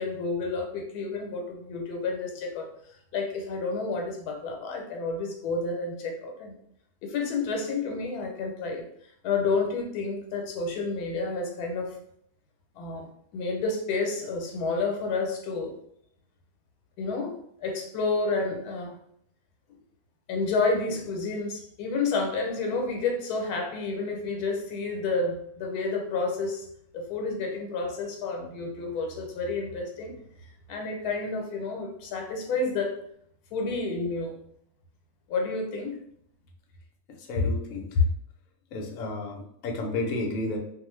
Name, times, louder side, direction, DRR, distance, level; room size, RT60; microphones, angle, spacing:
voice 1, 0.0-2.7 3.1-6.5 7.0-8.8 9.2-12.0 12.8-13.1 13.3-15.7 17.0-17.3 17.6-19.0 20.3-26.7 26.9-30.1 30.7-33.0 33.5-34.4 35.3-35.9, left 3 dB, 90° left, 2 dB, 1.1 m, -30 dB
voice 2, 37.2-38.1 38.7-40.6, left 3 dB, 70° left, 1 dB, 0.9 m, -28 dB
2.5 x 2.4 x 3.0 m, 0.70 s
omnidirectional pair, 1.6 m